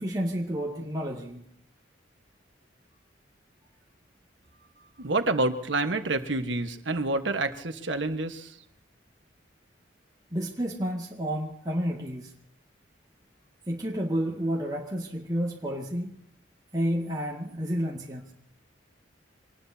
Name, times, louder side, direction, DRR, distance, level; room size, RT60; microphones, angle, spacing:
voice 1, 0.0-1.4 10.3-12.3 13.7-16.2 16.7-18.2, equal, 20° right, -3 dB, 2.1 m, -30 dB
voice 2, 5.0-8.6, right 2 dB, 80° right, 7 dB, 1.4 m, -28 dB
26.0 x 20.0 x 2.8 m, 0.73 s
head